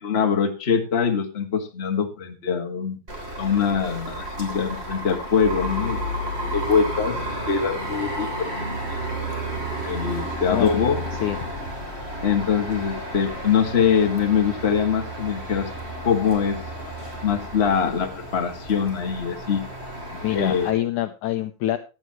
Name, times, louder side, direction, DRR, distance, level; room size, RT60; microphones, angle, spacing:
voice 1, 0.0-3.0 3.3-7.1 7.5-9.0 9.7-11.0 12.2-15.7 16.0-16.6 17.2-19.7 20.3-20.7, left 6 dB, 25° left, 4 dB, 1.4 m, -23 dB
sound 1, 3.1-20.7, right 1 dB, 20° right, 3.2 m, -32 dB
voice 2, 20.1-21.8, left 13 dB, 75° left, 9 dB, 1.9 m, -25 dB
15.5 x 9.7 x 3.1 m, 0.32 s
omnidirectional pair, 4.1 m